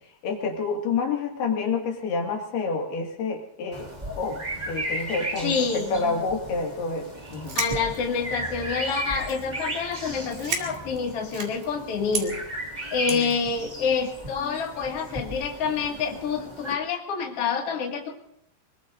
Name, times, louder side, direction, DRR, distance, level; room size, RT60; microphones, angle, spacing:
voice 1, 0.2-3.9 4.2-7.6 13.1-13.3, left 4 dB, 85° left, 1 dB, 4.2 m, -28 dB
sound 1, 3.7-16.7, right 1 dB, 25° right, 0.9 m, -36 dB
voice 2, 5.4-6.2 7.5-12.4 12.9-18.2, left 5 dB, 45° left, 0 dB, 2.7 m, -27 dB
sound 2, 7.3-8.6 9.1-9.6 9.8-10.0 10.3-11.7 12.1-12.3 13.1-13.4, right 6 dB, 75° right, 4.0 m, -32 dB
25.0 x 22.0 x 2.6 m, 0.71 s
omnidirectional pair, 4.5 m